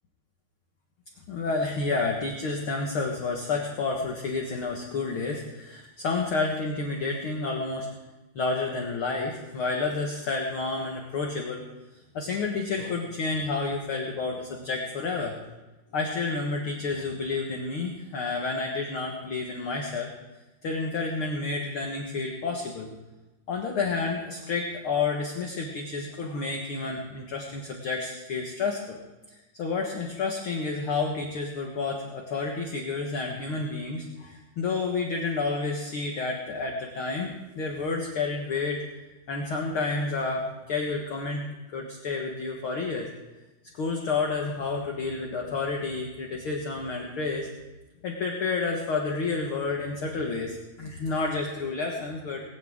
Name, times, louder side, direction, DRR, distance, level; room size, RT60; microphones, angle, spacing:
voice 1, 1.3-7.9 8.4-11.6 12.1-15.4 15.9-20.1 20.6-22.9 23.5-29.0 29.6-38.8 39.3-41.5 41.7-43.1 43.7-47.5 48.0-52.4, left 4 dB, 50° left, 1 dB, 1.8 m, -30 dB
19.5 x 16.5 x 3.7 m, 1.1 s
omnidirectional pair, 3.7 m